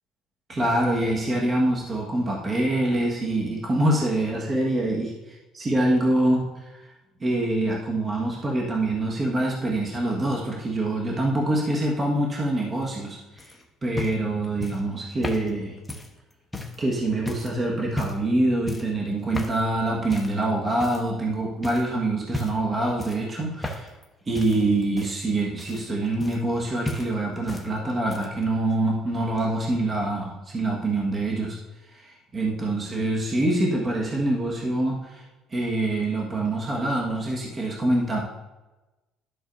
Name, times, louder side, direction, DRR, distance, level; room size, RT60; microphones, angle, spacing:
voice 1, 0.5-5.1 5.5-6.8 7.2-13.4 13.8-15.7 16.8-23.9 24.3-31.6 31.9-35.2 35.5-38.2, right 1 dB, 30° right, -2 dB, 1.6 m, -25 dB
sound 1, 13.4-16.8 17.3-17.5 17.9-18.3 18.7-19.0 19.3-19.6 20.1-20.4 20.8-21.3 21.6-21.9 22.3-22.7 23.0-24.0 24.3-26.6 26.8-27.7 27.9-28.4 29.4-29.5, left 1 dB, 10° left, 1.1 m, -34 dB
12.0 x 6.2 x 2.7 m, 1.1 s
supercardioid pair, 90°, 0 cm